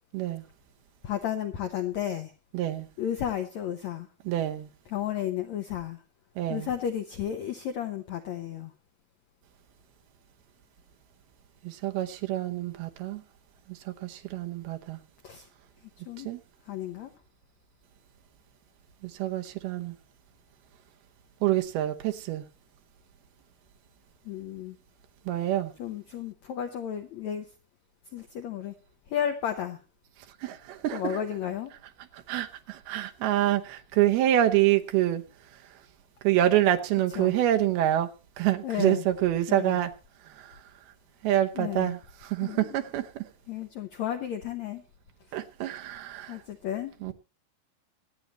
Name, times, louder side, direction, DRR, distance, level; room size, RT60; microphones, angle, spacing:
voice 1, 0.1-0.4 2.5-2.9 4.3-4.7 6.4-6.7 11.6-13.2 13.7-15.0 16.2-16.4 19.0-20.0 21.4-22.4 25.3-25.7 30.4-31.2 32.1-35.2 36.2-38.1 38.4-39.9 40.3-40.6 41.2-43.3 45.3-46.4 47.0-47.1, right 13 dB, 80° right, 2.8 m, -27 dB
voice 2, 1.0-2.3 3.0-4.1 4.9-6.0 6.5-8.7 15.2-15.5 16.0-16.3 16.6-17.1 24.2-24.8 25.8-27.5 28.1-28.7 29.1-29.8 30.9-31.7 37.1-37.4 38.6-39.1 39.5-39.8 41.5-41.9 42.4-42.8 43.5-44.8 45.3-45.4 46.3-47.1, left 10 dB, 75° left, 1.6 m, -33 dB
24.5 x 9.3 x 3.0 m
omnidirectional pair, 4.5 m